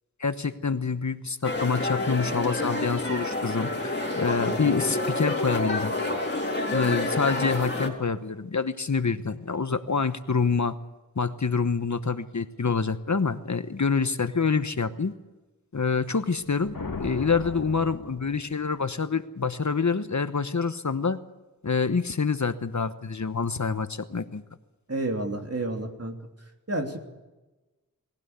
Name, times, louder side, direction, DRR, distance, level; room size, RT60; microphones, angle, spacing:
voice 1, 0.2-5.9 6.7-10.7 11.2-15.1 15.7-21.2 21.6-24.4, left 5 dB, 55° left, 11 dB, 1.1 m, -26 dB
sound 1, 1.4-7.9, left 2 dB, 30° left, 3.8 m, -28 dB
sound 2, 16.4-18.8, left 3 dB, 70° left, 2.4 m, -38 dB
voice 2, 24.9-26.1 26.7-27.0, right 2 dB, 45° right, 3 dB, 3.1 m, -30 dB
21.0 x 16.5 x 8.2 m, 1.1 s
wide cardioid pair, 60°, 35 cm